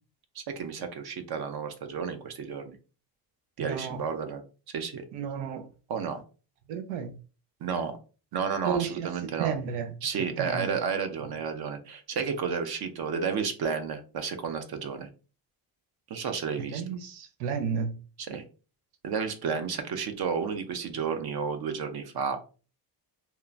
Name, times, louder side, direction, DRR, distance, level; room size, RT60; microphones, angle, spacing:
voice 1, 0.4-2.8 3.6-4.4 4.7-5.0 5.9-6.2 7.6-7.9 8.3-9.6 10.0-15.1 16.1-16.8 18.3-18.4 19.0-22.4, right 6 dB, 50° right, 0.7 m, -32 dB
voice 2, 3.6-4.0 5.1-5.7 6.7-7.1 8.6-9.9 10.4-10.7 16.7-17.9, right 7 dB, 85° right, 0.6 m, -32 dB
2.9 x 2.1 x 2.4 m
supercardioid pair, 70°, 48 cm